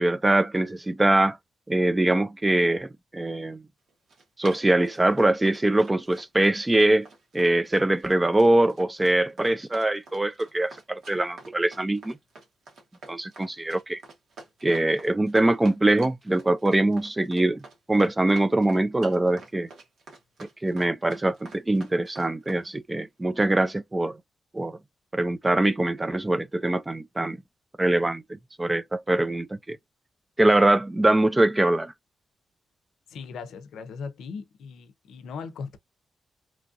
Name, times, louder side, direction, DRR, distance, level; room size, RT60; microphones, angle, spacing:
voice 1, 0.0-1.4 1.7-3.6 4.4-7.1 7.3-12.2 13.1-14.0 14.6-17.6 17.9-19.7 20.4-24.2 24.5-24.8 25.1-27.4 27.8-28.2 28.6-29.8 30.4-31.9, right 2 dB, 20° right, 0.3 m, -23 dB
Run, 3.9-22.6, right 3 dB, 75° right, 1.2 m, -46 dB
voice 2, 33.1-35.8, left 5 dB, 85° left, 0.5 m, -38 dB
3.0 x 2.4 x 2.5 m
cardioid pair, 65°, 0 cm